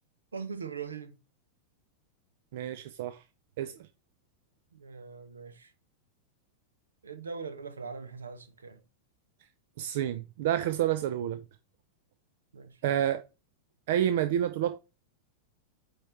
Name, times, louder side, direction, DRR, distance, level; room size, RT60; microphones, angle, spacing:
voice 1, 0.3-1.2 4.7-5.7 7.0-8.8 12.5-12.8, right 5 dB, 75° right, 0.9 m, -41 dB
voice 2, 2.5-3.2 3.6-3.7 9.8-11.4 12.8-13.2 13.9-14.8, right 11 dB, 55° right, 0.5 m, -29 dB
8.9 x 4.5 x 3.2 m
figure-of-eight pair, 90°, 0 cm